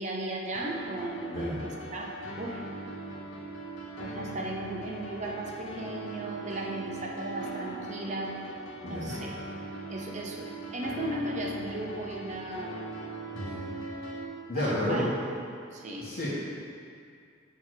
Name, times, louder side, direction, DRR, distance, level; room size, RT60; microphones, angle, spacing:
voice 1, 0.0-2.6 4.0-8.3 8.9-9.4 9.9-12.9 14.5-15.2 15.7-16.1, right 1 dB, 35° right, -1 dB, 0.7 m, -36 dB
sound 1, 0.5-14.2, right 2 dB, 80° left, 0.9 m, -40 dB
voice 2, 8.8-9.1 13.3-13.6 14.5-15.1 16.0-16.3, left 1 dB, 50° left, -9 dB, 1.4 m, -31 dB
7.6 x 3.6 x 6.3 m, 2.3 s
head